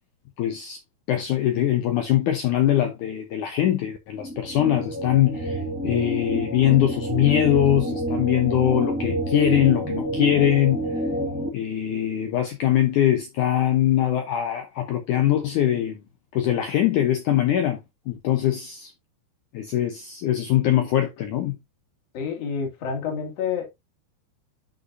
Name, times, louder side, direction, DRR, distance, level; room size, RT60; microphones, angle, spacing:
voice 1, 0.4-0.8 1.1-10.8 11.5-16.0 16.3-17.8 18.1-18.9 19.5-21.6, left 12 dB, 80° left, 1.8 m, -22 dB
sound 1, 4.1-11.5, right 1 dB, 5° right, 1.7 m, -28 dB
voice 2, 22.1-23.7, left 6 dB, 45° left, 3.0 m, -28 dB
10.5 x 5.6 x 2.7 m
omnidirectional pair, 4.8 m